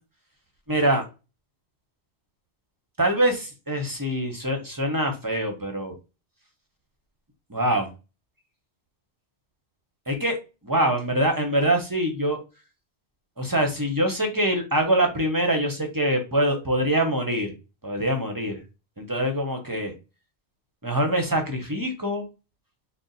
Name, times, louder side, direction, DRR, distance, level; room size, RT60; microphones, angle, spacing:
voice 1, 0.7-1.0 3.0-5.9 7.5-7.9 10.1-10.4 10.6-12.4 13.4-17.5 17.8-18.6 19.0-19.9 20.8-22.2, right 1 dB, 25° right, 3 dB, 0.6 m, -24 dB
4.1 x 2.0 x 3.8 m, 0.29 s
omnidirectional pair, 1.2 m